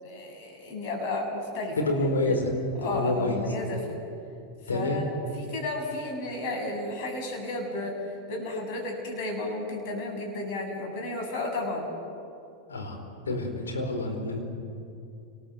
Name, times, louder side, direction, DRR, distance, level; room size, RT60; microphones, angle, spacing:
voice 1, 0.0-1.9 2.3-2.4 2.8-4.0 4.6-11.9, left 2 dB, 55° left, 1 dB, 8.0 m, -33 dB
voice 2, 1.8-2.5 2.9-3.4 4.7-5.0 12.7-13.0 13.2-14.4, left 2 dB, 90° left, 3 dB, 4.8 m, -27 dB
28.0 x 20.5 x 7.9 m, 2.6 s
hypercardioid pair, 100°, 0 cm